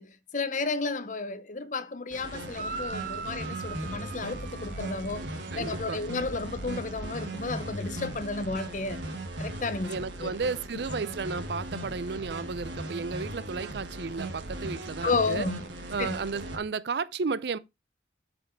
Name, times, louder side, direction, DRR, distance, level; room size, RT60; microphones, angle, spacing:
voice 1, 0.0-5.3 5.5-9.0 9.4-9.9 10.2-10.3 15.0-15.6 16.0-16.2, left 3 dB, 45° left, 0.8 m, -32 dB
sound 1, 2.1-16.6, right 1 dB, 85° right, 1.9 m, -38 dB
sound 2, 2.5-5.8, right 4 dB, 45° right, 1.0 m, -40 dB
voice 2, 5.3-6.0 9.9-15.5 15.9-17.6, right 4 dB, 65° right, 0.5 m, -33 dB
8.4 x 5.1 x 4.5 m
head